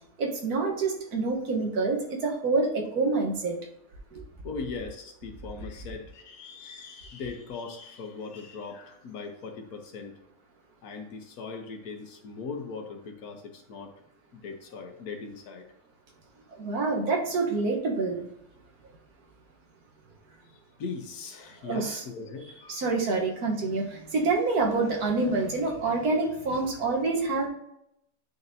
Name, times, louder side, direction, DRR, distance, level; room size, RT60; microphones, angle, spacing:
voice 1, 0.2-3.6 4.1-4.2 16.6-18.2 21.6-22.0 22.7-27.5, right 3 dB, 90° right, 0 dB, 1.7 m, -27 dB
voice 2, 4.4-10.2 10.8-13.9 14.3-15.6 20.5-22.9, left 4 dB, 85° left, 4 dB, 1.5 m, -40 dB
9.8 x 4.0 x 2.7 m, 0.79 s
omnidirectional pair, 1.5 m